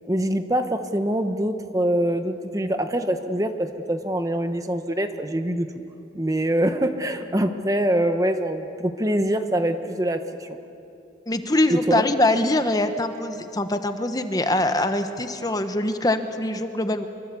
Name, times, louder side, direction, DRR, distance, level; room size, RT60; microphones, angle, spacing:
voice 1, 0.1-5.7 6.1-10.6 11.7-12.0, right 1 dB, 20° right, 8 dB, 1.0 m, -24 dB
voice 2, 11.3-17.1, left 1 dB, 20° left, 8 dB, 1.1 m, -23 dB
24.5 x 24.5 x 8.4 m, 2.8 s
head